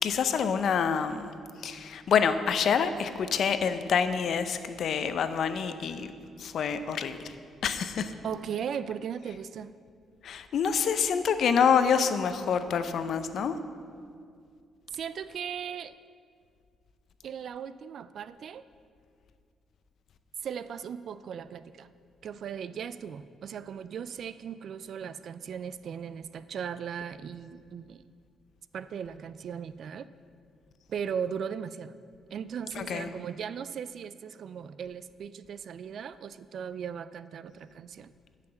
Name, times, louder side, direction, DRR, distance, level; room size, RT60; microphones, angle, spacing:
voice 1, 0.0-1.3 1.6-6.1 6.4-7.4 7.6-8.1 10.2-13.5 32.7-33.1, left 7 dB, 65° left, 10 dB, 0.6 m, -27 dB
voice 2, 8.2-9.7 14.9-16.0 17.2-18.6 20.4-21.9 22.2-28.0 28.7-30.1 30.9-31.9 32.3-38.1, right 7 dB, 60° right, 15 dB, 0.4 m, -37 dB
10.5 x 5.9 x 7.0 m, 2.2 s
cardioid pair, 90°, 0 cm